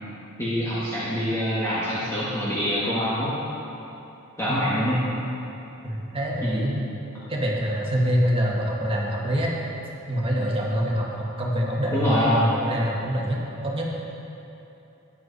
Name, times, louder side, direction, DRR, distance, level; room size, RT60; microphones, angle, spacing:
voice 1, 0.4-3.3 4.4-5.0 6.4-6.7 11.9-12.4, equal, 15° left, -10 dB, 1.8 m, -25 dB
voice 2, 5.8-6.8 7.3-9.5 10.1-13.4 13.6-13.9, equal, 25° right, -4 dB, 1.8 m, -25 dB
13.5 x 9.9 x 4.2 m, 2.9 s
head